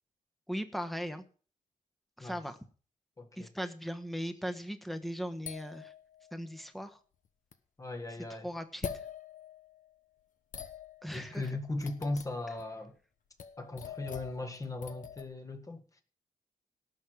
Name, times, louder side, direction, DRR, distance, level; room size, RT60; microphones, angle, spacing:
voice 1, 0.5-1.2 2.2-2.6 3.4-5.9 6.3-7.0 8.4-8.9 11.0-11.4, equal, ahead, 1.2 m, -38 dB
voice 2, 3.2-3.5 7.8-8.5 11.1-12.9 13.6-16.0, left 2 dB, 20° left, 1.7 m, -38 dB
sound 1, 5.5-6.6 7.5-7.6 8.8-9.9 10.5-12.6 13.4-15.2, left 7 dB, 60° left, 1.1 m, -44 dB
18.0 x 6.4 x 4.9 m
cardioid pair, 120°, 15 cm